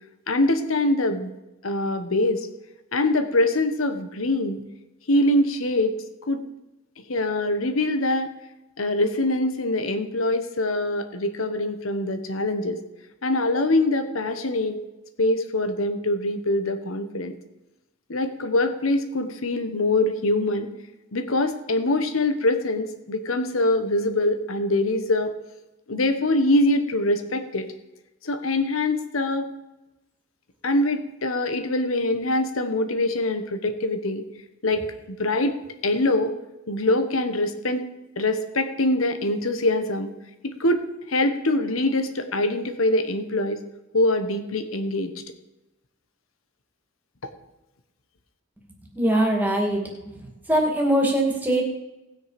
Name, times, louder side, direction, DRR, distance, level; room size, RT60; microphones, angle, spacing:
voice 1, 0.3-1.3 1.6-2.5 2.9-4.6 5.1-5.9 6.3-6.4 7.1-8.3 8.8-12.8 13.2-14.8 15.2-17.4 18.1-20.7 21.1-25.3 25.9-27.7 28.2-29.5 30.6-34.2 34.6-35.6 35.8-36.3 36.7-37.9 38.2-40.1 40.4-40.8 41.1-43.6 43.9-45.1, left 1 dB, 85° left, 8 dB, 1.2 m, -23 dB
voice 2, 48.9-49.8 50.1-51.6, right 1 dB, 10° right, 0 dB, 2.4 m, -22 dB
18.5 x 6.5 x 5.1 m, 0.99 s
head